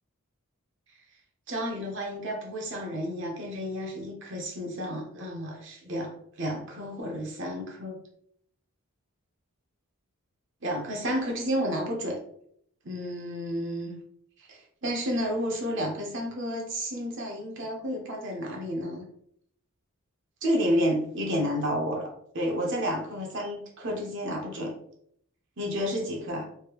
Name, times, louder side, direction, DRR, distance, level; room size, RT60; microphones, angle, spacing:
voice 1, 1.5-8.0 10.6-12.2 12.8-14.0 14.5-19.0 20.4-24.7 25.6-26.4, equal, 55° right, 0 dB, 0.8 m, -31 dB
3.3 x 2.7 x 3.0 m, 0.67 s
head